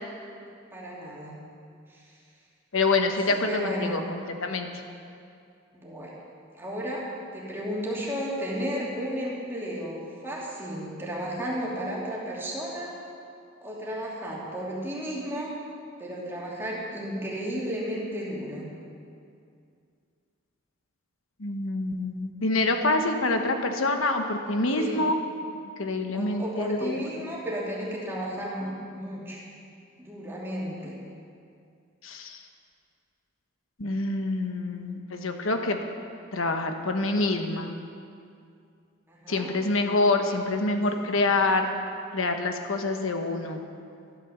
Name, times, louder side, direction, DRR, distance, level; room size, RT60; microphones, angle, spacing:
voice 1, 0.7-1.4 1.9-2.1 3.1-4.0 5.7-6.1 6.6-7.0 7.3-12.9 13.6-15.5 16.0-18.7 24.7-25.0 26.1-29.4 30.0-30.9 39.1-39.6 40.9-41.2, equal, 10° right, -6 dB, 2.9 m, -33 dB
voice 2, 2.7-4.7 21.4-25.2 25.8-27.0 32.0-32.4 33.8-35.8 36.3-37.7 39.3-41.7 42.1-43.6, left 2 dB, 80° left, 5 dB, 1.1 m, -26 dB
13.0 x 11.5 x 7.2 m, 2.4 s
head